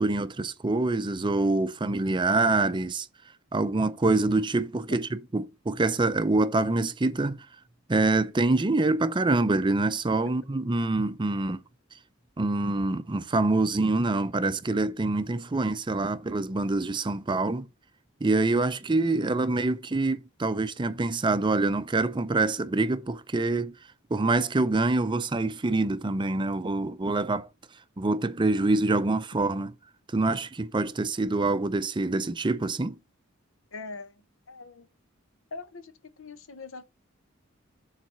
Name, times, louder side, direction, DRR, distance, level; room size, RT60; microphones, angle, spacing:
voice 1, 0.0-3.1 3.5-7.5 7.9-11.6 12.4-17.7 18.2-23.7 24.1-27.5 28.0-29.7 30.1-33.0, right 2 dB, 25° right, 0.5 m, -25 dB
voice 2, 33.7-34.9 35.5-36.9, left 3 dB, 75° left, 1.0 m, -42 dB
9.0 x 4.1 x 5.6 m
head